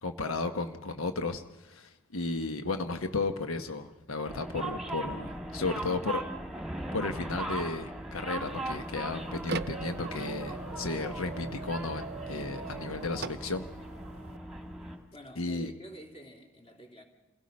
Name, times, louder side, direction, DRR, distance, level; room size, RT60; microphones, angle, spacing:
voice 1, 0.0-6.2 6.9-13.7 15.4-15.7, left 3 dB, 90° left, 1.1 m, -34 dB
sound 1, 4.3-15.0, right 1 dB, 5° right, 2.0 m, -39 dB
sound 2, 8.4-14.4, right 4 dB, 50° right, 0.6 m, -41 dB
voice 2, 15.1-17.0, right 1 dB, 30° left, 3.3 m, -49 dB
29.0 x 17.0 x 5.3 m
head